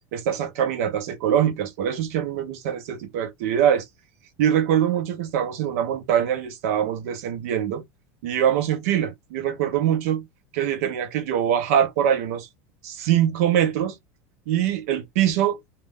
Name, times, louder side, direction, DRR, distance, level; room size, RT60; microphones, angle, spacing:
voice 1, 0.1-3.8 4.4-7.8 8.2-10.3 10.5-12.5 12.8-14.0 14.5-15.6, right 10 dB, 65° right, 0.7 m, -23 dB
2.4 x 2.2 x 3.3 m
supercardioid pair, 165°, 8 cm